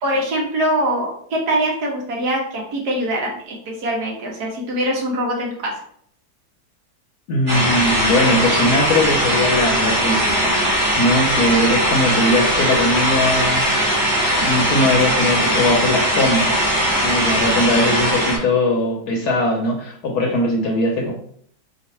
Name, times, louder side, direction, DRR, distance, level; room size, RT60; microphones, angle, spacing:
voice 1, 0.0-5.7, right 1 dB, 65° right, -1 dB, 1.5 m, -23 dB
voice 2, 7.3-10.6 11.0-13.8 14.4-16.6 17.0-21.1, left 1 dB, 70° left, 0 dB, 1.2 m, -20 dB
sound 1, 7.5-18.4, equal, 40° right, 1.8 m, -19 dB
3.7 x 2.5 x 4.3 m, 0.63 s
omnidirectional pair, 1.9 m